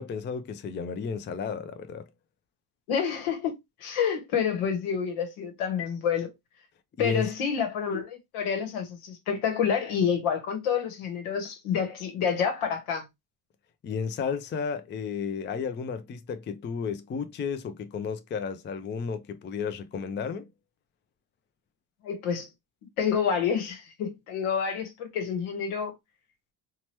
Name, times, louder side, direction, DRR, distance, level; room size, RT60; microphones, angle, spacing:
voice 1, 0.0-2.1 7.0-7.3 13.8-20.5, left 6 dB, 25° left, 0.4 m, -33 dB
voice 2, 2.9-6.3 7.0-13.0 22.0-22.5 23.0-25.9, left 7 dB, 75° left, 1.1 m, -28 dB
2.9 x 2.3 x 2.8 m
supercardioid pair, 55°, 50 cm